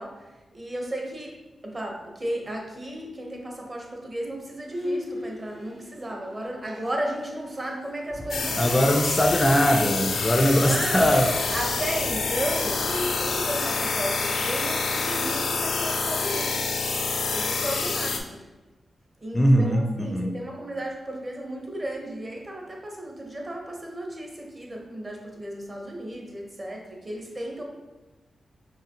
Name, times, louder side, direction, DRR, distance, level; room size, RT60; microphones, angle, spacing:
voice 1, 0.0-1.4 1.6-8.7 10.5-11.1 11.5-12.9 13.2-16.7 17.3-18.4 19.2-27.6, right 1 dB, 30° right, 1 dB, 0.8 m, -34 dB
Bowed string instrument, 4.7-9.0 9.3-9.4 9.7-10.0 10.3-13.2, left 1 dB, 55° right, 0.9 m, -38 dB
sound 1, 8.1-13.3, equal, 85° right, 1.4 m, -43 dB
sound 2, 8.3-18.2, left 4 dB, 80° left, 0.4 m, -27 dB
voice 2, 8.6-11.3 19.3-20.4, equal, 20° left, 3 dB, 0.4 m, -21 dB
4.8 x 2.8 x 2.8 m, 1.1 s
wide cardioid pair, 100°, 0 cm